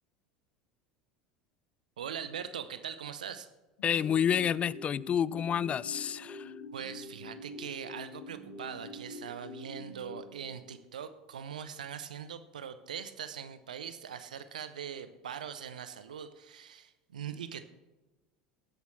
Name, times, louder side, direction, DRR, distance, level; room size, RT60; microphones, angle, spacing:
voice 1, 2.0-3.5 6.7-17.6, right 8 dB, 75° right, 0.8 m, -41 dB
sound 1, 3.8-11.0, left 2 dB, 70° left, 2.3 m, -46 dB
voice 2, 3.8-6.5, left 8 dB, 30° left, 0.3 m, -29 dB
18.5 x 8.2 x 3.2 m
figure-of-eight pair, 75°, 4 cm